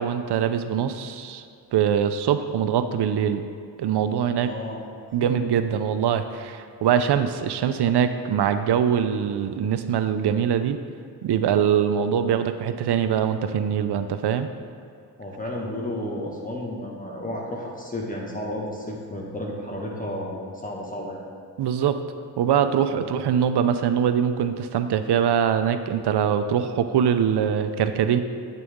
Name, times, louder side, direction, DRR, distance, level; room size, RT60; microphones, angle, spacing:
voice 1, 0.0-1.4 1.7-3.4 3.8-4.5 5.1-10.8 11.2-14.5 21.6-22.0 22.4-28.2, right 8 dB, 80° right, 9 dB, 0.6 m, -23 dB
voice 2, 4.4-4.8 15.2-21.2 23.0-23.1, left 1 dB, 20° left, -2 dB, 1.6 m, -32 dB
9.1 x 6.8 x 3.6 m, 2.5 s
cardioid pair, 80°, 39 cm